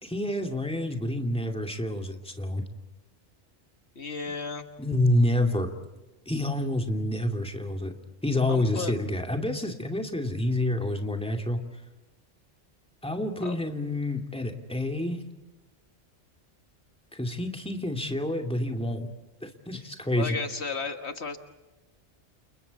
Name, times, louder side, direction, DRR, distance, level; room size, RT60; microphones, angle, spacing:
voice 1, 0.0-2.6 4.8-5.7 6.3-7.9 8.2-11.6 13.0-15.2 17.1-19.1 19.4-20.4, left 1 dB, 5° left, 3 dB, 2.4 m, -28 dB
voice 2, 4.0-4.7 8.5-9.0 13.4-13.6 20.1-21.4, left 4 dB, 65° left, 7 dB, 1.7 m, -33 dB
29.5 x 29.5 x 4.2 m, 1.1 s
omnidirectional pair, 1.2 m